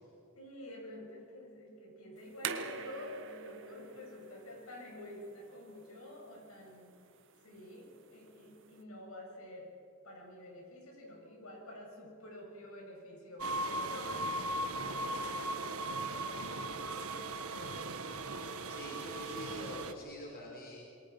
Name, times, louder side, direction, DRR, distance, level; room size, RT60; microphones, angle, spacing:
voice 1, 0.4-6.9 7.4-9.7 10.0-14.3 14.9-18.2, left 1 dB, 75° left, 0 dB, 7.4 m, -49 dB
sound 1, 2.2-8.8, right 5 dB, 60° right, 1.7 m, -46 dB
sound 2, 13.4-19.9, right 2 dB, 80° right, 1.6 m, -38 dB
voice 2, 18.7-20.8, equal, 45° left, -1 dB, 3.8 m, -45 dB
28.0 x 22.5 x 6.0 m, 2.8 s
head